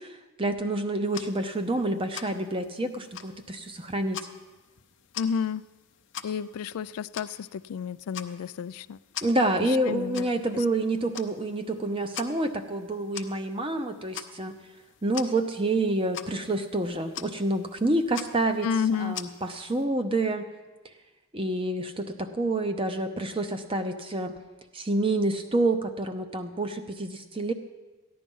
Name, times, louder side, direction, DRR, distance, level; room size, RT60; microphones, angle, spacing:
voice 1, 0.0-4.2 9.2-14.5 15.0-18.7 19.0-20.5 21.3-24.4 24.7-27.5, right 2 dB, 25° right, 8 dB, 0.7 m, -28 dB
sound 1, 1.0-19.8, left 9 dB, 55° left, 0.7 m, -44 dB
voice 2, 5.2-5.6 6.2-9.0 9.6-10.6 18.6-19.2, left 7 dB, 85° left, 17 dB, 0.3 m, -31 dB
14.5 x 10.5 x 5.4 m, 1.2 s
head